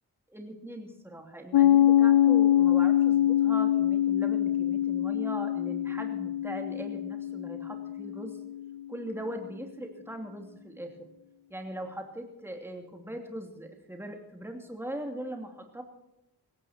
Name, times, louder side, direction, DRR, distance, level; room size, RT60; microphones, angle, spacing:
voice 1, 0.3-8.4 8.9-11.1 11.5-15.8, right 1 dB, 5° right, 3 dB, 2.8 m, -40 dB
Piano, 1.5-8.8, left 11 dB, 85° left, 0.8 m, -24 dB
18.0 x 15.0 x 4.4 m, 0.90 s
cardioid pair, 60°, 38 cm